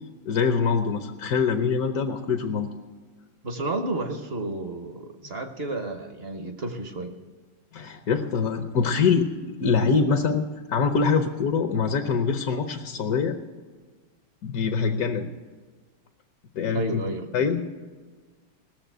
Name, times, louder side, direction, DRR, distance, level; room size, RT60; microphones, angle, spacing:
voice 1, 0.2-2.7 7.7-9.3 9.6-10.4 10.7-13.4 14.4-15.3 16.5-17.0 17.3-17.7, left 5 dB, 55° left, 5 dB, 1.1 m, -24 dB
voice 2, 3.4-7.2 16.7-17.5, right 2 dB, 40° right, 7 dB, 1.0 m, -31 dB
18.5 x 7.0 x 8.1 m, 1.4 s
omnidirectional pair, 2.2 m